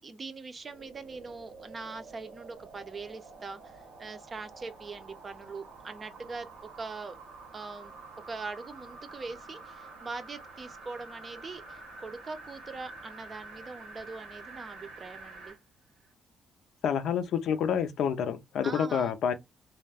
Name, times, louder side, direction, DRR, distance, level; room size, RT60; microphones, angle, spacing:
voice 1, 0.0-7.2 7.5-7.9 8.3-15.6 18.6-19.1, right 4 dB, 35° right, 0.5 m, -42 dB
sound 1, 0.6-15.6 16.0-16.1, right 3 dB, 85° right, 0.9 m, -48 dB
voice 2, 16.8-19.3, left 7 dB, 75° left, 0.5 m, -28 dB
2.3 x 2.1 x 3.3 m
cardioid pair, 90°, 0 cm